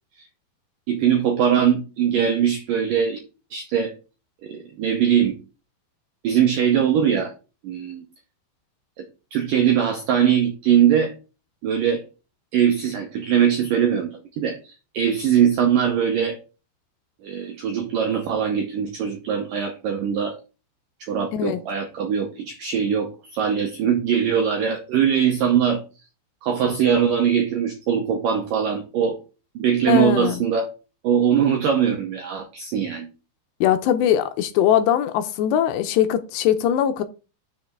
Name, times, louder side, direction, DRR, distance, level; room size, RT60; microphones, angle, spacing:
voice 1, 0.9-3.2 3.5-3.9 4.4-5.4 6.2-7.3 7.6-8.0 9.0-9.1 9.3-11.1 11.6-12.0 12.5-14.6 14.9-16.4 17.2-20.4 21.0-25.8 26.4-29.2 29.6-30.7 31.0-33.1, right 8 dB, 80° right, 1.9 m, -21 dB
voice 2, 29.9-30.4 33.6-37.0, left 10 dB, 80° left, 2.7 m, -21 dB
6.7 x 5.4 x 6.1 m
omnidirectional pair, 5.2 m